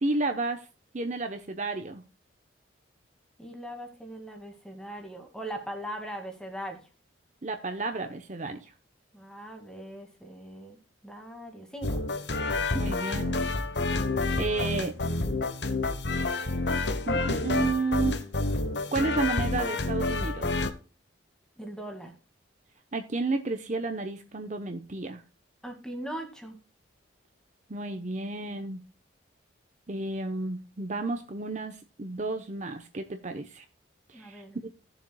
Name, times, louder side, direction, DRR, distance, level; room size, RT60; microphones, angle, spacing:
voice 1, 0.0-0.7 0.9-2.0 7.4-8.7 12.7-13.4 14.4-14.9 17.1-18.2 18.9-20.7 22.9-25.2 27.7-28.9 29.9-33.6 34.1-34.7, right 3 dB, 40° right, 6 dB, 0.8 m, -31 dB
voice 2, 3.4-6.9 9.1-10.8 11.0-12.0 21.6-22.1 25.6-26.6 34.1-34.6, right 1 dB, 5° left, 4 dB, 2.0 m, -40 dB
sound 1, 11.8-20.7, left 2 dB, 60° left, 1.0 m, -29 dB
17.5 x 7.2 x 2.2 m, 0.35 s
head